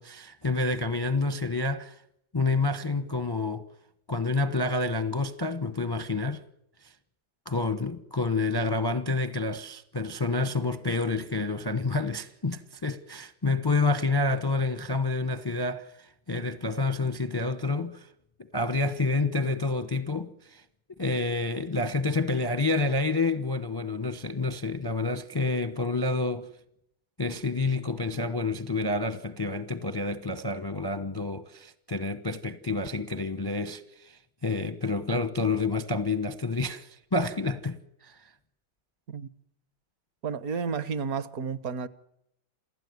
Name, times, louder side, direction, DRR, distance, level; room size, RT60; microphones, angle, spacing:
voice 1, 0.0-2.0 2.3-3.7 4.1-6.4 7.5-18.1 18.4-20.6 21.0-26.5 27.2-38.2, left 3 dB, 20° left, 0.6 m, -28 dB
voice 2, 40.2-41.9, right 5 dB, 55° right, 1.4 m, -31 dB
28.0 x 16.0 x 9.5 m
omnidirectional pair, 2.1 m